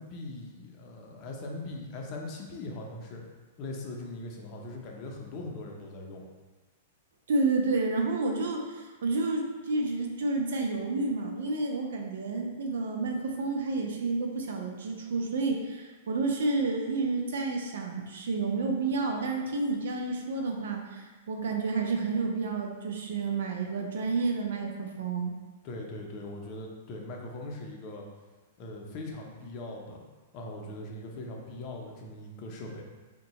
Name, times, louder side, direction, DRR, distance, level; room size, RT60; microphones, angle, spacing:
voice 1, 0.0-3.2 3.6-6.2 25.6-28.0 28.6-30.0 30.3-32.8, left 2 dB, 40° left, 0 dB, 0.6 m, -40 dB
voice 2, 7.3-25.3, right 3 dB, 75° right, 2 dB, 0.5 m, -30 dB
2.7 x 2.2 x 4.0 m, 1.3 s
hypercardioid pair, 140°, 0 cm